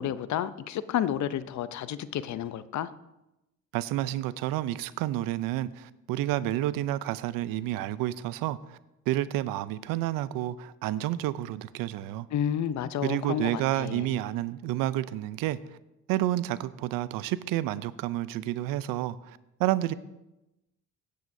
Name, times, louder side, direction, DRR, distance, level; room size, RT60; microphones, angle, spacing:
voice 1, 0.0-2.9 12.3-14.2, left 10 dB, 60° left, 0.6 m, -31 dB
voice 2, 3.7-8.8 9.1-12.3 13.0-15.6 16.1-19.9, right 14 dB, 90° right, 0.6 m, -30 dB
16.5 x 9.3 x 2.7 m
cardioid pair, 95°, 33 cm